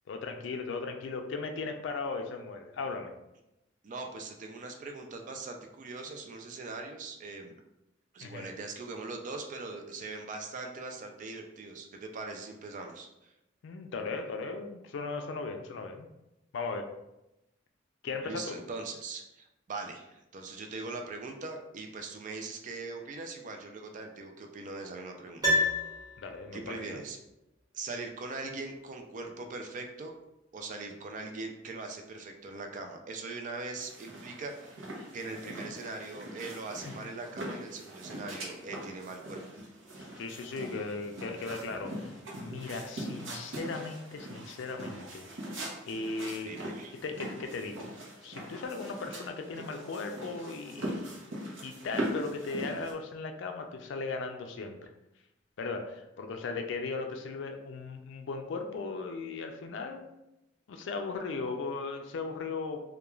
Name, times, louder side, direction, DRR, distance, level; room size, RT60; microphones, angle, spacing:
voice 1, 0.1-3.1 8.2-8.5 13.6-16.1 16.5-16.9 18.0-18.6 26.2-27.0 35.4-35.5 36.8-37.1 40.2-45.2 45.9-46.5 47.0-54.8 55.6-60.1 60.7-62.8, left 4 dB, 70° left, 5 dB, 0.3 m, -37 dB
voice 2, 3.8-7.5 8.1-13.3 18.2-25.6 26.5-27.2 27.7-30.1 30.5-34.8 35.1-39.4 46.4-46.9, right 3 dB, 40° right, 4 dB, 0.3 m, -41 dB
Piano, 25.4-26.7 26.9-27.0, left 1 dB, 20° right, 0.8 m, -29 dB
sound 1, 33.8-52.9, right 1 dB, 90° right, 0.7 m, -41 dB
2.3 x 2.2 x 3.0 m, 0.91 s
head